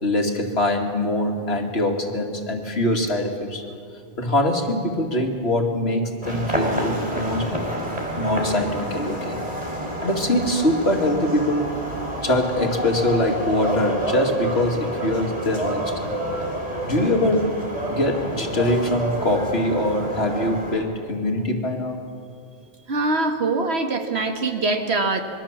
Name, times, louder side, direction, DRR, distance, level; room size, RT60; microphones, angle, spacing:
voice 1, 0.0-3.6 4.2-7.7 8.2-9.4 10.0-11.7 12.2-16.2 16.8-17.6 17.9-22.0, left 1 dB, 80° left, 2 dB, 2.7 m, -23 dB
sound 1, 6.2-20.7, right 1 dB, 35° right, 4.3 m, -29 dB
voice 2, 22.9-25.2, right 3 dB, 85° right, 5 dB, 2.0 m, -23 dB
26.0 x 22.5 x 7.4 m, 2.4 s
omnidirectional pair, 1.1 m